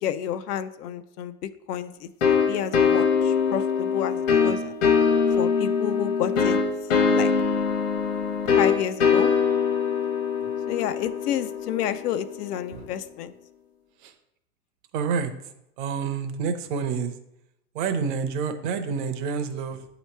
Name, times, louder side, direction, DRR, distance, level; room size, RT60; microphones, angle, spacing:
voice 1, 0.0-4.7 5.4-6.6 7.1-7.3 8.6-9.3 10.7-13.3, left 10 dB, 75° left, 12 dB, 0.6 m, -30 dB
sound 1, 2.2-12.7, left 6 dB, 55° left, 1.1 m, -23 dB
voice 2, 14.9-15.3 15.8-17.1 17.7-19.9, right 6 dB, 35° right, 7 dB, 0.5 m, -28 dB
7.9 x 3.0 x 4.4 m, 0.83 s
hypercardioid pair, 140°, 47 cm